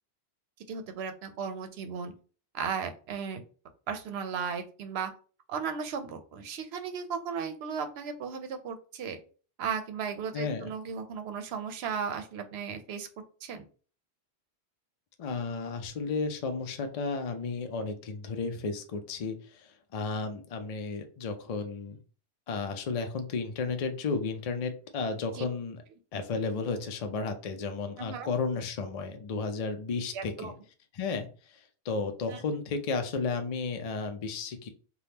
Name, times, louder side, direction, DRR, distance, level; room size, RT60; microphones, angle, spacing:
voice 1, 0.7-2.1 2.5-3.4 3.9-5.1 5.5-9.2 9.6-13.1 13.4-13.7 25.3-25.4 28.0-28.3 30.1-30.5 32.3-32.4, right 6 dB, 75° right, 7 dB, 0.8 m, -35 dB
voice 2, 10.3-10.7 15.2-22.0 22.5-25.8 26.1-30.5 30.9-34.7, left 4 dB, 55° left, 6 dB, 0.4 m, -33 dB
3.4 x 2.3 x 2.8 m, 0.38 s
omnidirectional pair, 1.1 m